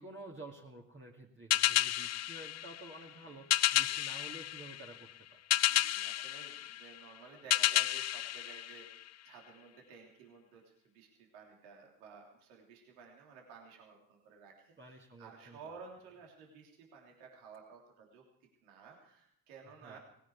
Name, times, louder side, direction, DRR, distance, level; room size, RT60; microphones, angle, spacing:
voice 1, 0.0-5.4 14.8-15.8 19.8-20.0, right 2 dB, 25° right, -1 dB, 2.3 m, -51 dB
sound 1, 1.5-9.4, left 14 dB, 35° left, 0.5 m, -32 dB
voice 2, 5.6-18.2 18.6-20.0, right 5 dB, 75° right, 0 dB, 3.3 m, -54 dB
19.0 x 16.0 x 4.8 m, 0.75 s
hypercardioid pair, 55°, 46 cm